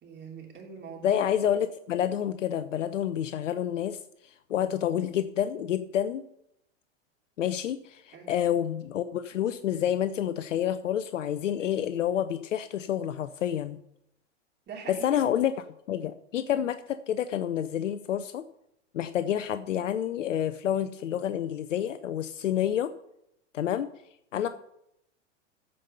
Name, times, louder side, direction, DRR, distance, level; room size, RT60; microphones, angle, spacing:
voice 1, 0.0-1.2 8.1-8.3 14.7-15.2 24.3-24.5, right 6 dB, 30° right, 1 dB, 3.1 m, -43 dB
voice 2, 1.0-6.2 7.4-13.8 14.9-18.4 18.9-22.9 23.5-23.9 24.3-24.5, left 10 dB, 85° left, 12 dB, 0.6 m, -29 dB
14.0 x 5.4 x 5.6 m, 0.79 s
hypercardioid pair, 105°, 37 cm